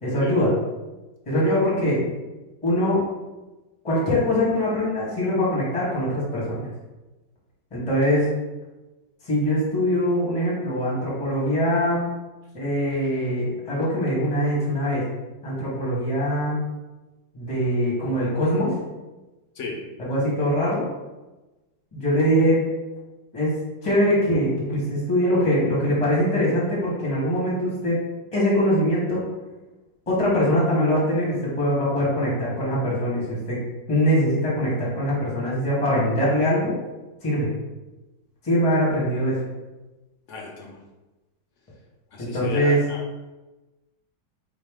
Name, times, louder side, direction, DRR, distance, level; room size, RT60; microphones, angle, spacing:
voice 1, 0.0-0.5 1.3-2.0 2.6-3.0 3.8-6.7 7.7-8.3 9.2-12.0 12.5-15.0 15.4-16.6 17.3-18.8 20.0-20.8 21.9-22.6 23.3-23.5 23.8-28.0 28.3-29.2 30.1-33.6 33.9-36.7 37.2-37.5 38.4-39.4 42.2-42.8, equal, 20° left, -6 dB, 1.2 m, -22 dB
voice 2, 40.3-40.8 42.1-43.0, left 3 dB, 60° left, -1 dB, 0.8 m, -35 dB
4.6 x 3.0 x 3.6 m, 1.1 s
omnidirectional pair, 2.0 m